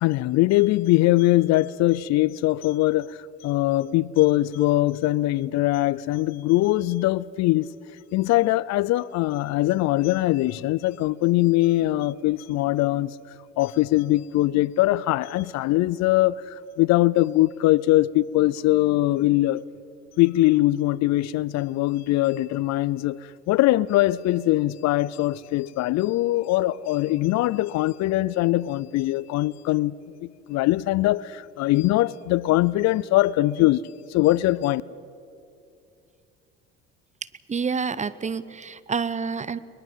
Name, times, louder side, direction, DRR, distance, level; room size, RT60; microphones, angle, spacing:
voice 1, 0.0-3.2 3.4-7.7 8.1-13.2 13.6-19.6 20.2-33.8 34.1-34.8, left 17 dB, 65° left, 0.6 m, -22 dB
voice 2, 37.5-39.6, right 5 dB, 25° right, 0.9 m, -28 dB
21.5 x 21.5 x 7.4 m
supercardioid pair, 80°, 30 cm